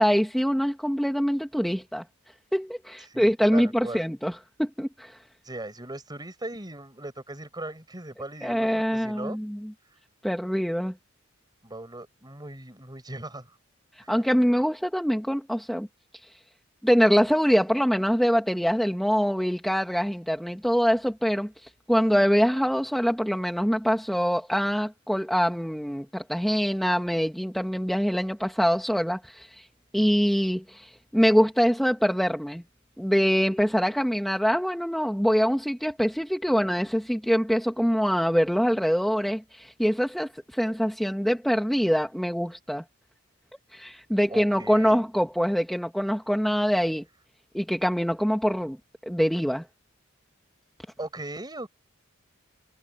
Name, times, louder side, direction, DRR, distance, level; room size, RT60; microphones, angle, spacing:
voice 1, 0.0-2.0 2.5-5.2 8.4-9.7 10.2-10.9 14.0-15.9 16.2-16.3 16.8-29.7 29.9-32.6 33.0-42.8 43.7-47.0 47.5-48.8 49.0-49.6, equal, ahead, 1.7 m, -24 dB
voice 2, 3.1-4.0 5.4-9.4 11.6-13.5 14.0-14.1 44.3-45.0 51.0-51.7, right 2 dB, 20° right, 6.5 m, -38 dB
head